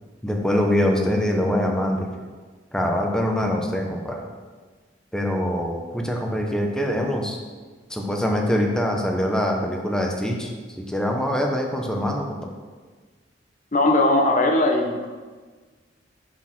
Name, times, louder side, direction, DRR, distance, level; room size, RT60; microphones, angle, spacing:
voice 1, 0.2-2.1 2.7-4.2 5.1-7.4 7.9-10.5 10.8-12.4, equal, 5° left, 1 dB, 0.9 m, -24 dB
voice 2, 13.7-15.1, left 2 dB, 45° left, 3 dB, 0.8 m, -19 dB
6.6 x 6.2 x 5.9 m, 1.4 s
head